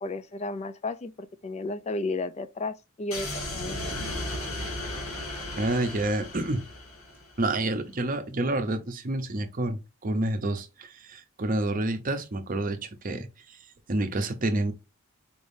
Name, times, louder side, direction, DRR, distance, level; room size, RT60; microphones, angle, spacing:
voice 1, 0.0-4.0, left 2 dB, 30° left, 0.3 m, -33 dB
sound 1, 3.1-7.5, left 1 dB, 80° left, 1.7 m, -35 dB
voice 2, 5.6-6.6 7.4-13.3 13.9-14.7, right 2 dB, 40° right, 0.6 m, -28 dB
4.6 x 3.4 x 2.6 m
head